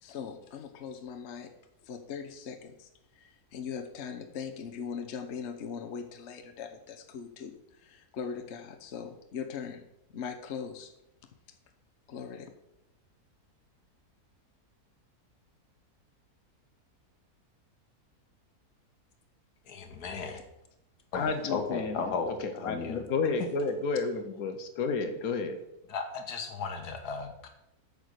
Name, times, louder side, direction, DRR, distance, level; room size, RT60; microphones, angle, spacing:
voice 1, 0.0-1.5 1.8-2.9 3.5-7.5 7.8-9.8 10.1-10.9 12.1-12.5, left 6 dB, 50° left, 5 dB, 1.1 m, -40 dB
voice 2, 19.7-20.4 21.1-23.0 25.9-27.5, left 4 dB, 90° left, 5 dB, 1.7 m, -35 dB
voice 3, 21.1-22.1 22.4-25.6, left 4 dB, 70° left, 8 dB, 1.4 m, -31 dB
8.5 x 5.1 x 6.5 m, 0.84 s
omnidirectional pair, 1.6 m